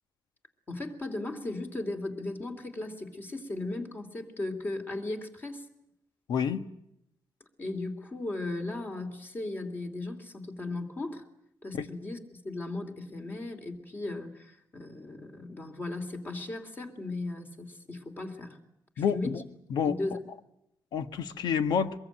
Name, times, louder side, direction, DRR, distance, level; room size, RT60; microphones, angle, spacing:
voice 1, 0.7-5.6 7.6-11.2 11.6-18.6 19.0-19.4 19.8-20.2, left 2 dB, 30° left, 5 dB, 3.0 m, -37 dB
voice 2, 6.3-6.6 11.7-11.9 19.0-19.4 19.7-20.0 20.9-21.9, left 7 dB, 90° left, 10 dB, 1.4 m, -28 dB
23.5 x 22.5 x 9.1 m, 0.82 s
wide cardioid pair, 165°, 7 cm